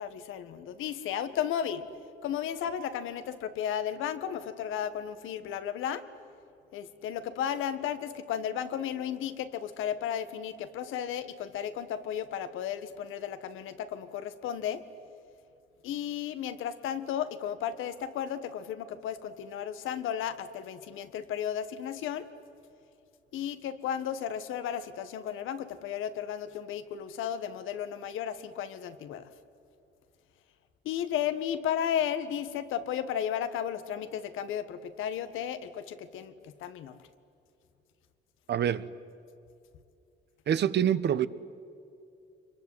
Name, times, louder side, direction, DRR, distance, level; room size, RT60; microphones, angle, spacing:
voice 1, 0.0-1.9 2.2-6.0 6.7-14.8 15.8-22.3 23.3-29.3 30.9-37.0, left 9 dB, 90° left, 1.6 m, -34 dB
voice 2, 38.5-38.9 40.5-41.3, right 9 dB, 60° right, 1.1 m, -26 dB
26.0 x 22.5 x 9.6 m
cardioid pair, 90°, 20 cm